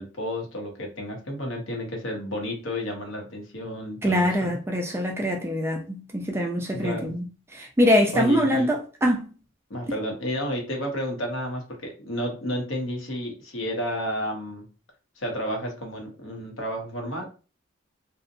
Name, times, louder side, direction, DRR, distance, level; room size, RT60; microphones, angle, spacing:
voice 1, 0.0-4.6 6.7-7.2 8.1-8.7 9.7-14.7 15.2-17.3, equal, 70° left, 0.8 m, -31 dB
voice 2, 4.0-7.2 7.5-9.3, equal, 10° right, 0.3 m, -23 dB
2.7 x 2.1 x 2.5 m
head